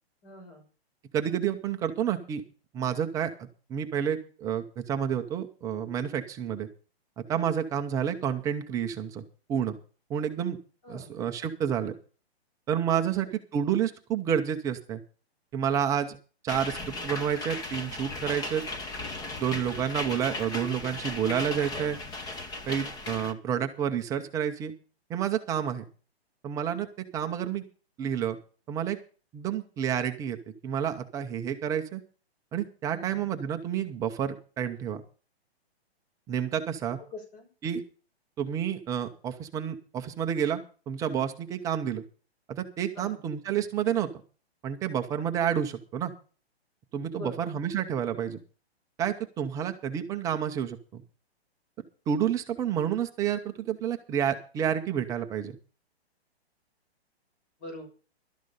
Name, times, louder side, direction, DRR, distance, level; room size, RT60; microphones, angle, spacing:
voice 1, 0.2-0.6 10.8-11.1 13.2-13.3 32.9-33.2 37.1-37.5 43.0-43.2 47.1-47.5 57.6-57.9, left 2 dB, 35° left, 3 dB, 6.1 m, -43 dB
voice 2, 1.1-2.4 2.7-6.7 7.2-9.2 9.5-9.8 10.1-10.6 10.9-11.9 12.7-15.0 15.5-16.2 16.4-18.6 19.4-22.0 22.7-24.7 25.1-25.8 26.4-26.9 27.1-27.6 28.0-28.4 28.7-29.0 29.3-30.4 30.6-32.0 32.5-35.0 36.3-37.0 37.6-37.8 38.4-40.6 40.9-42.0 42.5-44.1 44.6-46.1 46.9-48.4 49.0-51.0 52.1-55.6, right 8 dB, 10° right, 6 dB, 0.5 m, -29 dB
sound 1, 16.5-23.3, left 2 dB, 10° left, 0.9 m, -36 dB
12.5 x 10.5 x 5.4 m, 0.37 s
hypercardioid pair, 150°, 32 cm